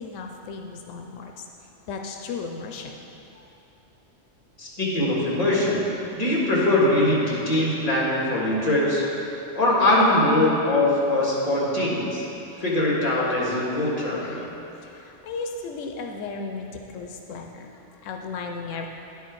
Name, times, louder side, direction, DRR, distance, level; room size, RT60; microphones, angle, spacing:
voice 1, 0.0-1.3 1.9-2.9 3.3-3.4 14.2-14.5 14.8-18.9, left 4 dB, 90° left, 3 dB, 0.9 m, -35 dB
voice 2, 4.6-5.9 6.1-9.0 9.5-12.3 12.6-14.4, left 1 dB, 30° left, -6 dB, 1.8 m, -22 dB
10.5 x 4.7 x 4.6 m, 2.9 s
omnidirectional pair, 1.3 m